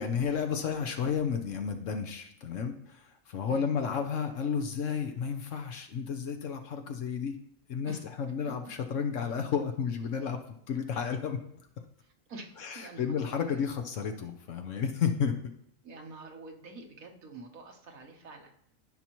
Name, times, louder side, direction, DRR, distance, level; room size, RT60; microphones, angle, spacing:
voice 1, 0.0-7.4 7.7-10.4 10.7-11.4 12.6-15.3, left 6 dB, 70° left, 6 dB, 1.1 m, -32 dB
voice 2, 12.3-13.6 15.8-18.5, right 2 dB, 90° right, 2 dB, 1.6 m, -47 dB
14.5 x 5.6 x 3.0 m, 0.69 s
omnidirectional pair, 1.4 m